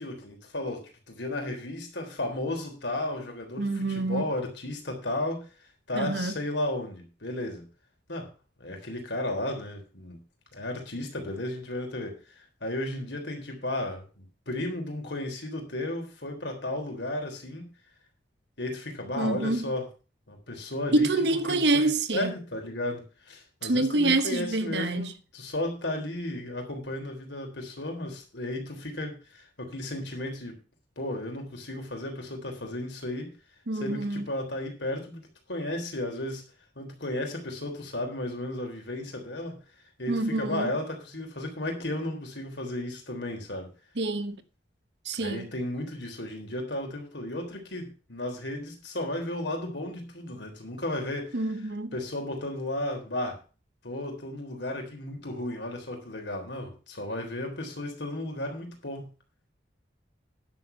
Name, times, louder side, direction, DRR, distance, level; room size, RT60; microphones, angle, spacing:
voice 1, 0.0-5.5 5.9-7.6 8.1-8.3 8.6-10.2 10.5-17.7 18.6-19.9 20.3-21.1 21.5-30.6 31.0-33.3 33.8-35.2 35.5-36.4 36.8-39.6 40.0-43.7 45.2-51.4 51.9-53.4 53.8-59.1, left 1 dB, 80° left, 3.6 m, -34 dB
voice 2, 3.6-4.3 5.9-6.3 19.2-19.7 20.9-22.3 23.6-25.1 33.7-34.3 40.1-40.7 44.0-44.4 45.0-45.5 51.3-52.0, right 2 dB, 70° right, 1.1 m, -27 dB
10.5 x 7.1 x 5.6 m
head